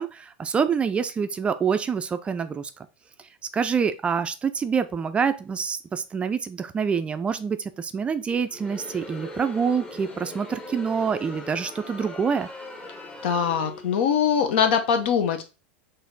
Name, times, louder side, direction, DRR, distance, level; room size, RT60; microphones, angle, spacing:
voice 1, 0.0-2.7 3.5-12.5, right 6 dB, 20° right, 10 dB, 0.4 m, -26 dB
Crowd, 8.4-14.1, left 2 dB, 15° left, 0.8 m, -40 dB
voice 2, 13.2-15.4, left 7 dB, 75° left, 7 dB, 0.9 m, -22 dB
4.2 x 2.6 x 3.9 m, 0.30 s
supercardioid pair, 125°, 6 cm